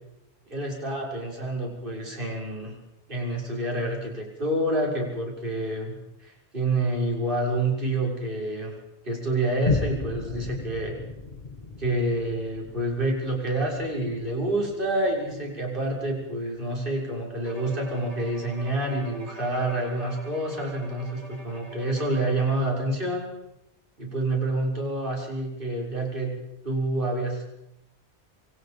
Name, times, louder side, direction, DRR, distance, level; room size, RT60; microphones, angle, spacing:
voice 1, 0.5-2.7 3.1-8.7 9.0-11.0 11.8-23.3 24.0-26.3 26.6-27.5, right 1 dB, 50° right, -1 dB, 6.8 m, -28 dB
Boom, 9.6-16.6 17.1-17.2, left 3 dB, 40° left, 1.9 m, -35 dB
Bowed string instrument, 17.4-22.8, right 2 dB, 35° right, 2.8 m, -44 dB
28.5 x 25.5 x 5.4 m, 0.85 s
omnidirectional pair, 1.1 m